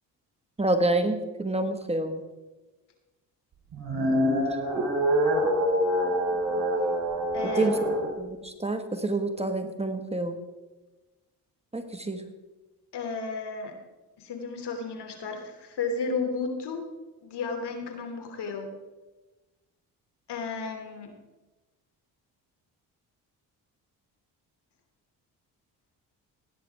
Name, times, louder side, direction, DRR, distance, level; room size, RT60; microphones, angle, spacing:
voice 1, 0.6-2.2 7.6-7.8 8.1-10.4 11.7-12.2, right 2 dB, 15° right, 7 dB, 1.5 m, -27 dB
sound 1, 3.7-8.1, equal, 55° right, 3.6 m, -25 dB
voice 2, 7.3-7.9 12.9-13.7 14.2-16.8 17.2-18.7 20.3-21.1, left 4 dB, 70° left, 5 dB, 2.8 m, -33 dB
17.5 x 9.7 x 3.5 m, 1.1 s
supercardioid pair, 65°, 42 cm